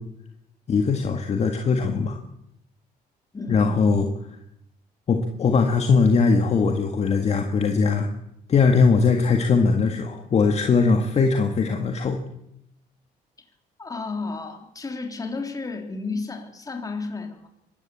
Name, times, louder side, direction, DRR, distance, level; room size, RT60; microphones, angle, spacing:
voice 1, 0.7-2.2 3.5-4.1 5.1-8.1 8.5-12.2, left 4 dB, 40° left, 4 dB, 1.8 m, -20 dB
voice 2, 3.3-3.9 13.8-17.5, left 3 dB, 20° left, 4 dB, 3.4 m, -32 dB
23.5 x 13.0 x 8.6 m, 0.81 s
cardioid pair, 110°, 17 cm